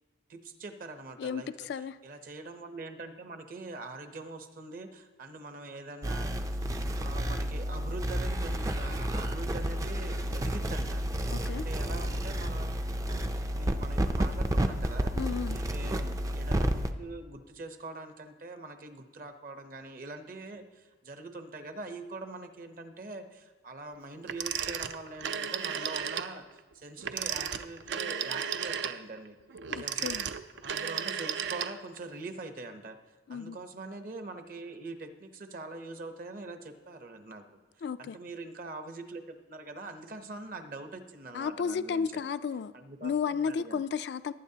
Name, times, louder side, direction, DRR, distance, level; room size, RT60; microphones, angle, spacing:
voice 1, 0.3-1.5 1.8-11.0 11.4-12.8 13.1-13.2 13.5-15.1 15.5-26.4 26.7-29.4 29.7-30.2 30.6-33.0 33.3-37.4 37.8-42.2 42.7-43.8, right 2 dB, 50° right, 0.8 m, -43 dB
voice 2, 1.2-2.0 11.3-11.7 15.2-15.6 29.7-30.3 33.3-33.6 37.8-38.2 41.3-42.7 43.0-44.3, left 6 dB, 65° left, 0.3 m, -33 dB
sound 1, 6.0-16.9, equal, 20° right, 0.4 m, -31 dB
Telephone, 24.3-26.3 27.0-32.0, right 8 dB, 75° right, 0.5 m, -34 dB
19.0 x 9.1 x 2.8 m
head